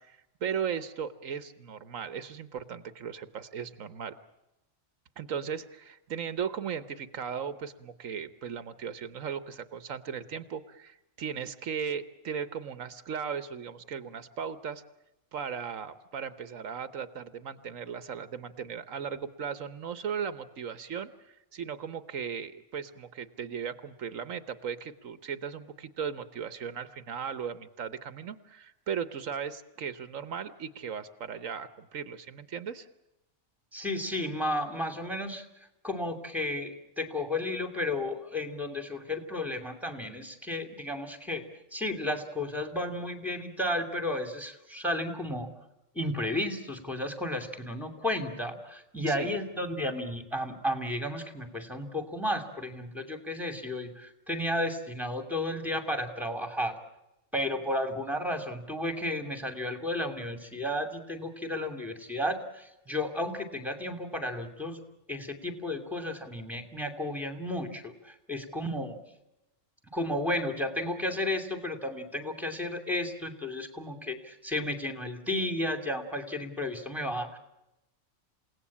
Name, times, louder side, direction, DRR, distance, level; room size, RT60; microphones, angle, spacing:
voice 1, 0.0-4.2 5.2-14.8 15.3-32.9 49.1-49.4, right 7 dB, 85° right, 13 dB, 1.5 m, -37 dB
voice 2, 33.7-35.4 35.8-41.4 41.7-45.5 45.9-56.8 57.3-64.8 65.1-69.0 69.9-77.4, left 1 dB, ahead, 8 dB, 2.6 m, -33 dB
28.5 x 17.5 x 8.6 m, 0.92 s
omnidirectional pair, 1.3 m